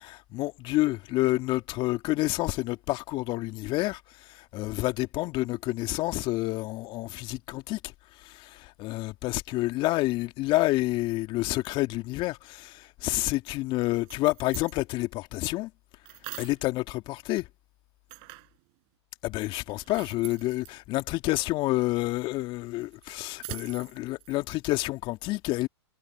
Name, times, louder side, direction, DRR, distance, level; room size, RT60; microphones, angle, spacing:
voice 1, 0.0-15.7 16.4-17.5 19.2-25.7, left 19 dB, 35° left, 2.7 m, -29 dB
sound 1, 13.9-14.8 16.1-16.6 18.1-18.6 19.7-20.7 22.8-24.6, right 35 dB, 40° right, 6.6 m, -44 dB
hypercardioid pair, 115°, 15 cm